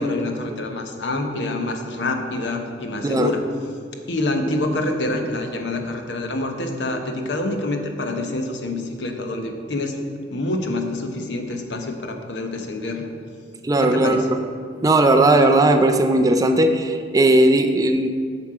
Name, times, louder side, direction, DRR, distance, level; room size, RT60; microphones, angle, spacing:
voice 1, 0.0-3.4 4.1-10.0 10.3-13.1 13.8-14.3, left 2 dB, 70° left, 4 dB, 0.8 m, -26 dB
voice 2, 13.6-14.4 14.8-18.1, right 2 dB, 20° right, 7 dB, 0.4 m, -17 dB
7.5 x 6.0 x 4.8 m, 2.2 s
head